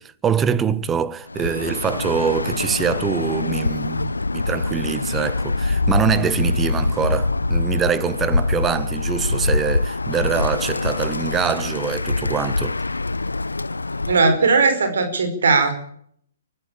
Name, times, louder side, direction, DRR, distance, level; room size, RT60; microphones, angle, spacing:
voice 1, 0.0-12.8, right 7 dB, 15° right, 1.2 m, -24 dB
Bird, 1.3-14.4, left 3 dB, 85° left, 0.8 m, -24 dB
voice 2, 14.1-15.7, right 4 dB, 70° right, 4.9 m, -18 dB
24.0 x 14.0 x 8.8 m
figure-of-eight pair, 125°, 0 cm